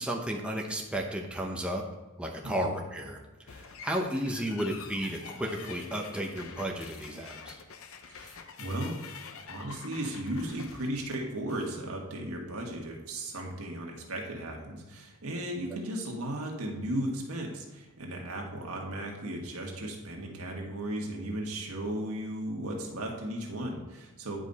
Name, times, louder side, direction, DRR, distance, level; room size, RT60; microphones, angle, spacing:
voice 1, 0.0-1.8 2.2-7.6, equal, 5° right, 0 dB, 0.8 m, -33 dB
sound 1, 3.5-11.8, left 6 dB, 65° left, 0.7 m, -47 dB
voice 2, 8.1-9.2 9.5-24.4, right 1 dB, 80° right, 0 dB, 1.7 m, -36 dB
10.0 x 5.2 x 4.1 m, 1.2 s
head